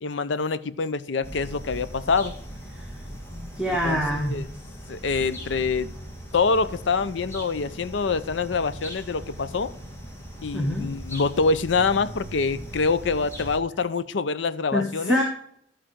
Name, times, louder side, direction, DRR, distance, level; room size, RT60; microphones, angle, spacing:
voice 1, 0.0-2.3 3.7-4.0 4.3-4.4 4.9-5.9 6.3-9.7 10.4-15.2, left 4 dB, 80° left, 15 dB, 0.6 m, -25 dB
sound 1, 1.2-13.6, equal, 15° left, 1.8 m, -39 dB
voice 2, 2.7-3.0 3.3-4.4 10.5-10.9 14.7-15.2, equal, 5° right, -1 dB, 1.3 m, -26 dB
13.5 x 5.0 x 4.5 m, 0.72 s
head